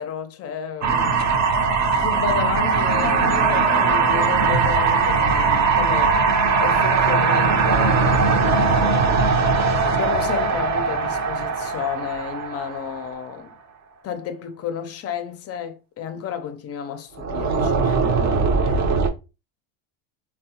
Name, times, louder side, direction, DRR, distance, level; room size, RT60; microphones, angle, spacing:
voice 1, 0.0-1.3 2.0-8.1 9.7-13.5 14.0-18.9, left 7 dB, 35° left, 0.5 m, -32 dB
sound 1, 0.8-13.1 17.2-19.1, right 4 dB, 40° right, 0.7 m, -20 dB
3.5 x 2.2 x 2.8 m
supercardioid pair, 90°, 45 cm